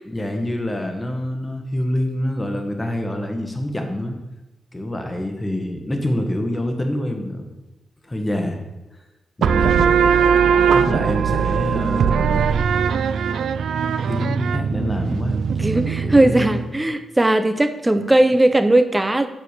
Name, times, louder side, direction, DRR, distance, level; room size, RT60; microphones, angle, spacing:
voice 1, 0.0-4.1 4.7-7.4 8.0-8.6 9.4-10.0 10.7-12.5 14.1-16.7 17.9-18.0, left 1 dB, 15° left, 4 dB, 1.2 m, -26 dB
sound 1, 9.4-16.7, right 7 dB, 80° right, 0.4 m, -20 dB
voice 2, 15.6-19.3, right 1 dB, 10° right, 10 dB, 0.6 m, -17 dB
7.1 x 6.9 x 6.6 m, 1.0 s
wide cardioid pair, 170°, 0 cm